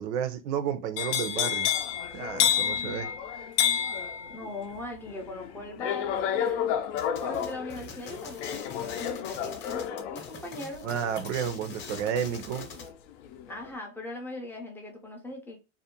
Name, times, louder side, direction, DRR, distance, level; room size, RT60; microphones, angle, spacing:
voice 1, 0.0-1.7 2.1-3.1 10.8-12.7, right 8 dB, 75° right, 0.6 m, -31 dB
sound 1, 1.0-12.9 13.3-13.7, left 9 dB, 80° left, 0.5 m, -30 dB
voice 2, 4.3-6.7 7.2-10.8 13.5-15.6, left 2 dB, 5° left, 0.3 m, -40 dB
sound 2, 7.0-12.9, left 5 dB, 30° left, 0.7 m, -43 dB
2.5 x 2.0 x 2.8 m
supercardioid pair, 140°, 36 cm